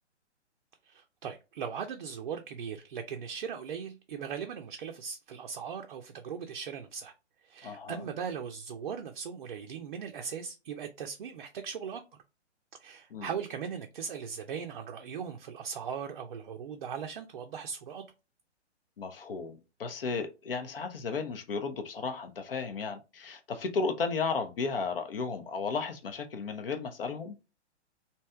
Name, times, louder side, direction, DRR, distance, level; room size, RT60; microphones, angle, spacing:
voice 1, 0.8-7.1 7.4-12.0 12.8-18.0, right 7 dB, 45° right, 0.5 m, -39 dB
voice 2, 7.6-8.0 13.1-13.3 19.0-27.4, left 4 dB, 55° left, 0.7 m, -34 dB
3.1 x 2.8 x 3.3 m
figure-of-eight pair, 125°, 35 cm